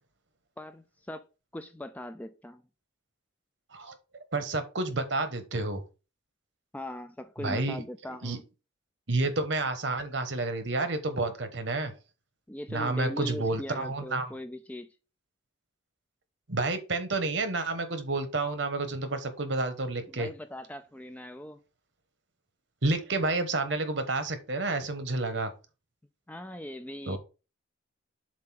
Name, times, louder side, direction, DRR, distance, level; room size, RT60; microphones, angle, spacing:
voice 1, 0.6-1.3 1.5-2.6 6.7-8.4 12.5-14.9 20.1-21.6 26.3-27.2, left 1 dB, 10° left, 0.4 m, -40 dB
voice 2, 4.3-5.8 7.4-7.8 8.2-8.4 9.1-11.9 12.7-14.3 16.5-20.3 22.8-25.5 27.1-27.2, right 2 dB, 70° right, 1.2 m, -30 dB
7.4 x 2.7 x 5.8 m
head